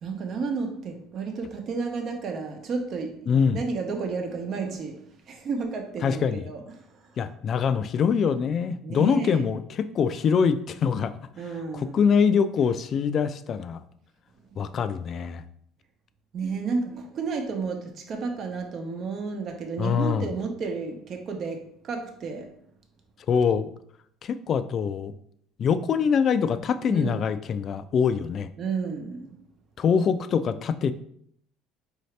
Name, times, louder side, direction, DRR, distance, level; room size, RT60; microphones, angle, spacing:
voice 1, 0.0-7.1 8.8-9.4 11.4-12.2 14.5-14.6 16.3-22.5 26.9-27.3 28.6-29.4, right 4 dB, 50° right, 4 dB, 0.8 m, -32 dB
voice 2, 3.3-3.6 6.0-6.4 7.2-11.1 11.7-13.8 14.6-15.4 19.8-20.3 23.3-23.7 24.2-25.1 25.6-28.5 29.8-30.9, left 6 dB, 50° left, 11 dB, 0.3 m, -24 dB
4.8 x 2.7 x 3.2 m, 0.66 s
supercardioid pair, 90°, 0 cm